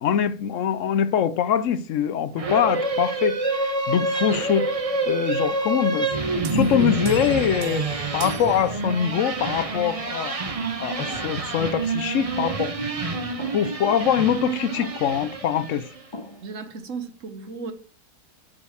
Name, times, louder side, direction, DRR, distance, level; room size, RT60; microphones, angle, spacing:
voice 1, 0.0-4.7 5.1-10.3 10.8-12.7 13.5-15.9, left 9 dB, 65° left, 0.8 m, -24 dB
sound 1, 2.4-16.0, right 2 dB, 30° right, 0.7 m, -27 dB
sound 2, 6.4-9.4, right 12 dB, 90° right, 1.1 m, -39 dB
sound 3, 11.1-11.4 12.4-12.8 13.4-13.9 14.8-15.3 16.1-16.6, left 3 dB, 25° left, 0.8 m, -41 dB
voice 2, 16.4-17.7, right 4 dB, 60° right, 1.2 m, -35 dB
7.2 x 5.2 x 6.2 m
omnidirectional pair, 1.7 m